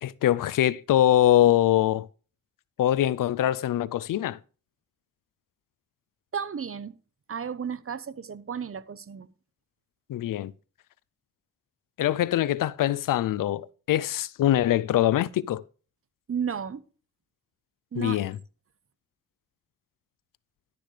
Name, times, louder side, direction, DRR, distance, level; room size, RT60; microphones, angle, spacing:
voice 1, 0.0-2.1 2.8-4.4 10.1-10.5 12.0-15.6 18.0-18.4, left 12 dB, 80° left, 0.5 m, -23 dB
voice 2, 6.3-7.0 7.3-9.3 16.3-16.8 17.9-18.2, right 7 dB, 45° right, 0.9 m, -33 dB
12.0 x 10.0 x 3.3 m
cardioid pair, 65°, 32 cm